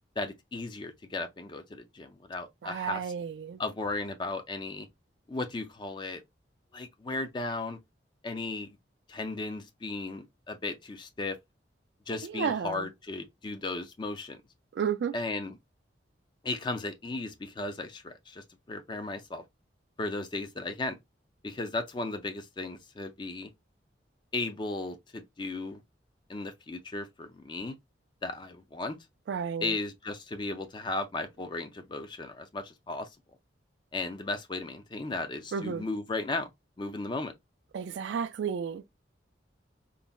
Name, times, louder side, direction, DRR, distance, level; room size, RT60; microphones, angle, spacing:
voice 1, 0.2-3.0 3.6-4.9 5.3-6.2 6.7-7.8 8.2-8.8 9.1-11.4 12.1-14.4 15.1-15.6 16.4-19.4 20.0-21.0 21.4-23.5 24.3-25.8 26.3-27.8 28.2-29.0 29.6-33.1 33.9-36.5 36.8-37.3, left 2 dB, 25° left, 0.4 m, -35 dB
voice 2, 2.6-3.6 12.2-12.9 14.7-15.1 29.3-29.8 35.5-35.8 37.7-38.8, right 7 dB, 70° right, 0.3 m, -32 dB
3.8 x 2.1 x 2.2 m
head